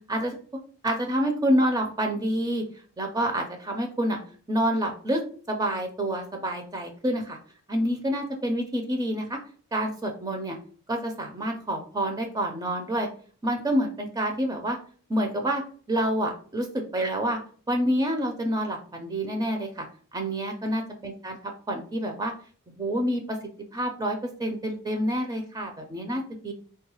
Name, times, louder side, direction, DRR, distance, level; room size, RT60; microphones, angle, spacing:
voice 1, 0.8-2.6 3.0-4.2 4.5-5.2 5.5-7.4 7.7-9.4 9.7-10.6 10.9-13.1 13.4-14.8 15.1-15.6 15.9-17.4 17.7-19.9 20.1-21.4 21.7-22.3 22.7-23.4 23.7-26.5, equal, 20° right, 4 dB, 0.4 m, -27 dB
3.4 x 2.3 x 2.9 m, 0.42 s
head